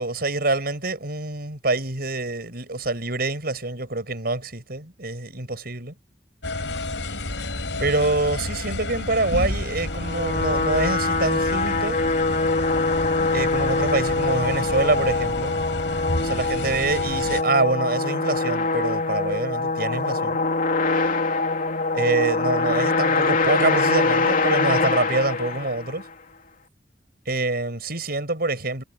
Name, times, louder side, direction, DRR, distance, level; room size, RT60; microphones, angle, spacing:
voice 1, 0.0-5.9 7.8-12.0 13.3-15.6 16.2-20.4 21.9-26.1 27.2-28.8, right 2 dB, 60° right, 6.5 m, -26 dB
sound 1, 6.4-17.4, left 2 dB, 85° left, 5.5 m, -31 dB
sound 2, 9.8-26.1, left 3 dB, 50° left, 3.0 m, -23 dB
head